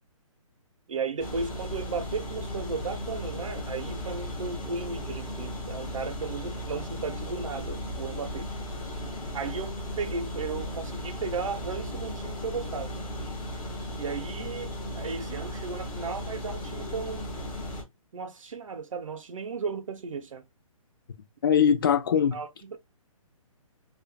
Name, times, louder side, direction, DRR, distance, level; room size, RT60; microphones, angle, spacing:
voice 1, 0.9-8.5 9.3-12.9 14.0-17.3 18.1-20.4 22.3-22.8, right 5 dB, 65° right, 0.8 m, -35 dB
sound 1, 1.2-17.8, left 1 dB, 15° left, 1.6 m, -36 dB
voice 2, 21.4-22.4, left 8 dB, 40° left, 0.5 m, -21 dB
4.9 x 2.6 x 2.3 m
hypercardioid pair, 165°, 18 cm